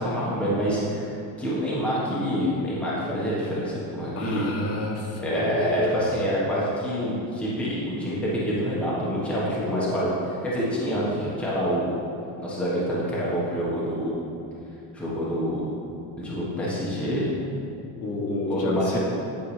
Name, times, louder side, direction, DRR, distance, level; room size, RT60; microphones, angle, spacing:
voice 1, 0.0-4.4 5.2-10.1 10.4-11.9 12.4-14.1 14.9-15.7 16.2-17.3 18.5-19.0, equal, 5° left, -8 dB, 1.1 m, -27 dB
voice 2, 4.1-6.1 9.5-10.2 10.9-11.1 18.0-19.0, left 2 dB, 40° left, -1 dB, 1.2 m, -30 dB
10.5 x 4.7 x 3.2 m, 2.6 s
cardioid pair, 145°, 39 cm